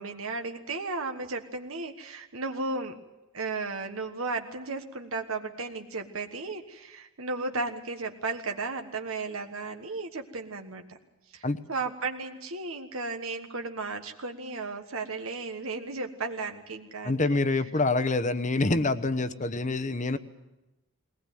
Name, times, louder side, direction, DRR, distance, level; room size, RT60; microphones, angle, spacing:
voice 1, 0.0-3.0 3.3-10.8 11.3-17.4, right 3 dB, 70° right, 5 dB, 1.4 m, -34 dB
voice 2, 17.0-20.2, left 2 dB, 35° left, 11 dB, 1.0 m, -26 dB
21.5 x 19.0 x 9.2 m, 1.0 s
head